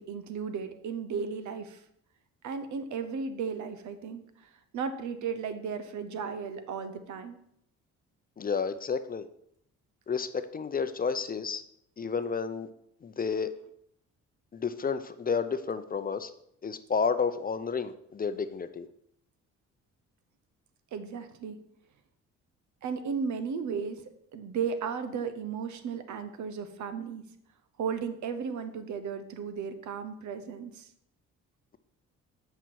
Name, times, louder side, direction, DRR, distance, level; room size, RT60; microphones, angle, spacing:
voice 1, 0.0-1.8 2.4-7.4 20.9-21.6 22.8-24.0 24.3-27.2 27.8-30.9, right 6 dB, 75° right, 10 dB, 0.9 m, -35 dB
voice 2, 8.4-9.3 10.1-11.6 12.0-12.7 13.0-13.5 14.5-16.3 16.6-18.9, left 5 dB, 30° left, 10 dB, 0.6 m, -31 dB
7.8 x 5.7 x 4.6 m, 0.72 s
cardioid pair, 90°, 30 cm